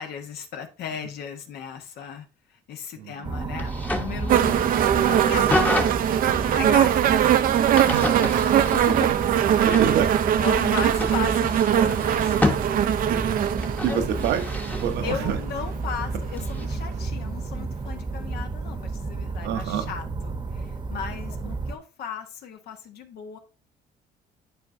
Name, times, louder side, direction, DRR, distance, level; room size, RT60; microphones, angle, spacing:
voice 1, 0.0-4.6 5.1-5.6 6.2-7.2 8.6-10.0 10.4-12.4 13.9-14.3 15.0-23.4, left 7 dB, 70° left, 1.2 m, -36 dB
voice 2, 2.9-3.4 7.8-8.4 9.1-9.2 9.6-10.1 13.1-14.5 14.8-15.4 19.4-19.9 21.4-21.6, right 9 dB, 75° right, 1.0 m, -28 dB
sound 1, 3.2-21.8, right 3 dB, 25° right, 0.9 m, -32 dB
sound 2, 3.6-5.9 7.7-9.2 9.7-9.9 10.8-12.6 13.6-14.9 16.4-16.6, left 2 dB, 10° left, 1.0 m, -29 dB
sound 3, 4.3-15.4 16.3-16.4, right 10 dB, 55° right, 0.5 m, -22 dB
10.0 x 4.4 x 2.7 m
cardioid pair, 110°, 17 cm